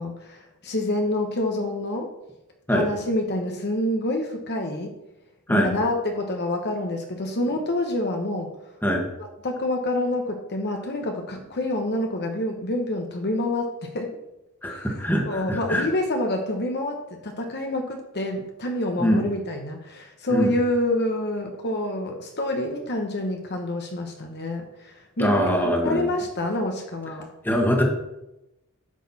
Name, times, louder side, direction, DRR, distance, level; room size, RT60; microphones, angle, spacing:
voice 1, 0.0-2.1 2.7-5.0 5.5-8.6 9.2-14.1 14.6-27.3, left 1 dB, 50° left, 3 dB, 1.1 m, -27 dB
voice 2, 14.6-15.9 19.0-19.2 20.3-20.5 25.2-26.0 27.4-27.8, equal, 10° left, 1 dB, 1.5 m, -22 dB
11.0 x 6.6 x 4.2 m, 0.92 s
head